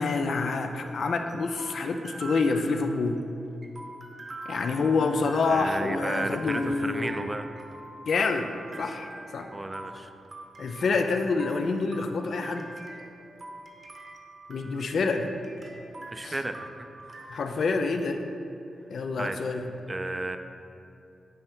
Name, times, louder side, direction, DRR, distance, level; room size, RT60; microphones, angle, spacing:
voice 1, 0.0-3.2 4.5-7.1 8.1-8.5 8.8-9.5 10.6-12.7 14.5-15.3 16.2-16.3 17.3-18.2 18.9-19.7, left 4 dB, 75° left, 6 dB, 0.5 m, -27 dB
sound 1, 0.6-17.3, right 2 dB, 45° right, 0.9 m, -44 dB
voice 2, 5.5-7.5 8.8-8.9 9.5-10.1 16.1-16.7 17.0-17.4 19.2-19.4 19.9-20.4, right 2 dB, 25° right, 7 dB, 0.4 m, -33 dB
9.7 x 3.3 x 4.5 m, 2.6 s
cardioid pair, 75°, 0 cm